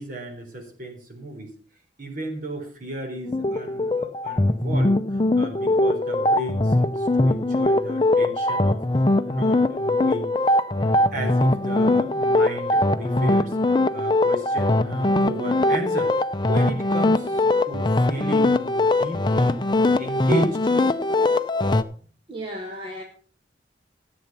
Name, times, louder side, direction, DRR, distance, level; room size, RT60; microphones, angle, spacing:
voice 1, 0.0-1.5 2.0-10.3 10.8-13.6 13.9-16.1 16.5-19.6 20.0-20.6, right 1 dB, 50° right, 3.9 m, -34 dB
sound 1, 3.3-21.8, left 2 dB, 25° left, 0.6 m, -21 dB
voice 2, 22.3-23.0, equal, 30° right, 1.6 m, -34 dB
14.0 x 8.0 x 5.9 m
head